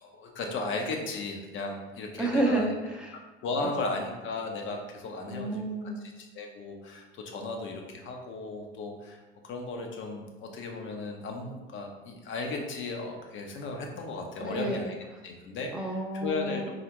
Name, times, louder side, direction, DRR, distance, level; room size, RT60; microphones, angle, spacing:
voice 1, 0.0-2.7 3.4-5.6 6.2-9.2 9.4-14.9 15.2-15.7 16.2-16.6, left 3 dB, 35° left, 2 dB, 0.8 m, -35 dB
voice 2, 2.2-3.2 3.6-3.7 5.3-6.0 14.4-14.8 15.7-16.7, right 1 dB, 5° right, -2 dB, 0.7 m, -30 dB
4.8 x 2.5 x 3.0 m, 1.2 s
hypercardioid pair, 80°, 33 cm